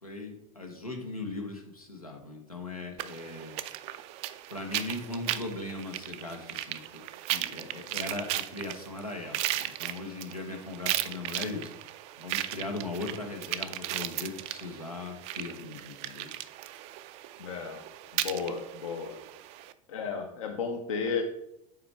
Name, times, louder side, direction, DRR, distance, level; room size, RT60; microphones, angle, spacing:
voice 1, 0.0-3.6 4.5-7.0 7.3-11.7 12.2-16.3, left 2 dB, 90° left, 2 dB, 1.0 m, -39 dB
sound 1, 3.0-19.7, right 14 dB, 35° right, 0.4 m, -36 dB
voice 2, 17.4-17.8 18.1-19.2 19.9-21.2, left 5 dB, 65° left, 4 dB, 0.8 m, -33 dB
7.2 x 4.6 x 3.3 m, 0.79 s
figure-of-eight pair, 80°, 18 cm